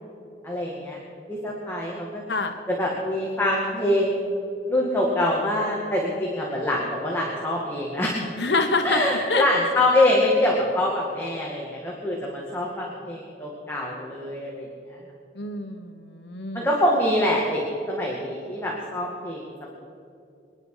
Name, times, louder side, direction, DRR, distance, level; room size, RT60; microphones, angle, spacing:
voice 1, 0.4-1.0 1.3-2.2 2.7-4.3 4.7-8.2 8.8-15.0 16.5-19.7, left 1 dB, 15° left, -3 dB, 2.1 m, -25 dB
voice 2, 2.3-2.6 8.4-9.0 9.3-9.4 15.3-16.7, left 3 dB, 80° left, 5 dB, 1.3 m, -26 dB
27.0 x 10.5 x 5.0 m, 2.6 s
head